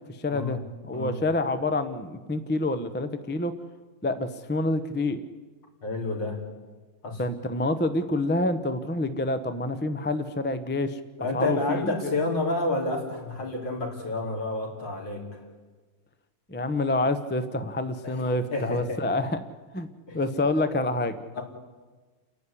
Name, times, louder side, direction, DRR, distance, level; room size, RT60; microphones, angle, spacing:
voice 1, 0.1-0.6 0.9-3.5 4.0-5.2 7.2-11.0 11.3-12.1 16.5-19.4 19.7-19.9 20.1-21.4, left 2 dB, 10° left, 9 dB, 0.5 m, -27 dB
voice 2, 5.8-6.4 7.0-7.2 11.2-15.4 18.0-19.0 20.1-20.2 21.3-21.4, left 2 dB, 70° left, -1 dB, 4.8 m, -29 dB
29.5 x 11.5 x 9.9 m, 1.3 s
omnidirectional pair, 2.1 m